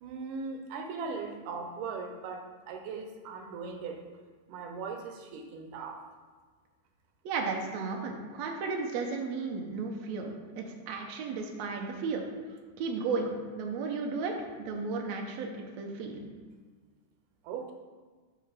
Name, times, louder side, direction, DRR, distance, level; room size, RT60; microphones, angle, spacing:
voice 1, 0.0-4.0 4.5-6.0 17.4-17.7, right 5 dB, 90° right, 4 dB, 2.3 m, -39 dB
voice 2, 7.3-12.2 12.8-16.2, right 4 dB, 70° right, 1 dB, 2.0 m, -34 dB
7.1 x 5.8 x 5.1 m, 1.5 s
omnidirectional pair, 3.6 m